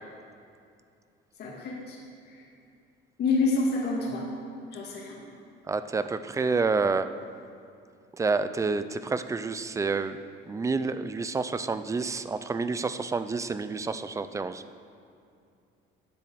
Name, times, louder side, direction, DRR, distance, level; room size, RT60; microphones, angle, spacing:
voice 1, 1.4-2.0 3.2-4.3 4.7-5.2, left 3 dB, 55° left, -3 dB, 2.1 m, -27 dB
voice 2, 5.7-7.1 8.1-10.2 10.5-14.6, right 4 dB, 15° right, 12 dB, 0.3 m, -28 dB
9.7 x 7.4 x 7.7 m, 2.5 s
cardioid pair, 160°, 20 cm